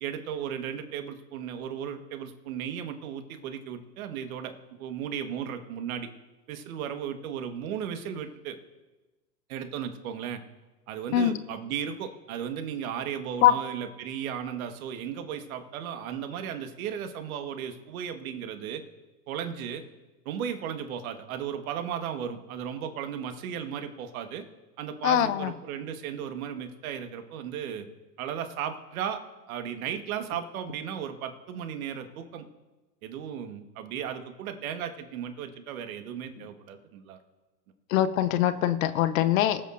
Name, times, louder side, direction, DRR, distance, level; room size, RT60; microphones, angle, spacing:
voice 1, 0.0-4.5 4.8-6.1 6.5-8.6 9.5-10.4 10.9-18.8 19.3-19.8 20.2-24.4 24.8-27.8 28.2-29.2 29.5-32.4 33.0-37.2, right 8 dB, 55° right, 6 dB, 1.6 m, -35 dB
voice 2, 25.0-25.5 37.9-39.6, left 11 dB, 55° left, 11 dB, 0.9 m, -22 dB
24.5 x 8.2 x 2.6 m, 1.2 s
hypercardioid pair, 115°, 49 cm